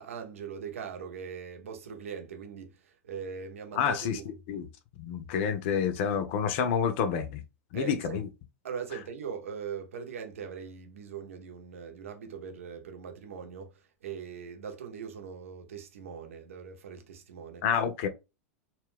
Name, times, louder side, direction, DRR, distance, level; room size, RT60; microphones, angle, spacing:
voice 1, 0.0-2.7 3.0-4.3 7.7-8.2 8.6-13.7 14.0-17.6, right 7 dB, 75° right, 0.8 m, -40 dB
voice 2, 3.7-4.7 5.0-7.4 7.7-8.3 17.6-18.1, left 7 dB, 55° left, 0.6 m, -29 dB
2.4 x 2.2 x 3.5 m
hypercardioid pair, 95°, 7 cm